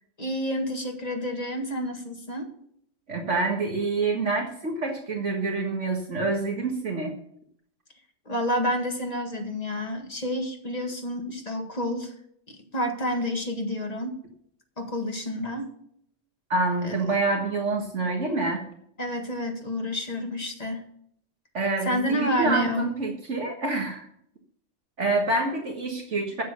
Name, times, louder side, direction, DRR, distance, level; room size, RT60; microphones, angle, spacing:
voice 1, 0.2-2.5 8.3-12.1 12.5-14.2 14.8-15.7 16.8-17.0 19.0-20.9 21.9-22.9, left 1 dB, 30° left, 3 dB, 2.0 m, -29 dB
voice 2, 3.1-7.1 16.5-18.6 21.5-24.0 25.0-26.4, right 3 dB, 65° right, 2 dB, 1.9 m, -27 dB
9.4 x 7.5 x 6.8 m, 0.68 s
omnidirectional pair, 1.3 m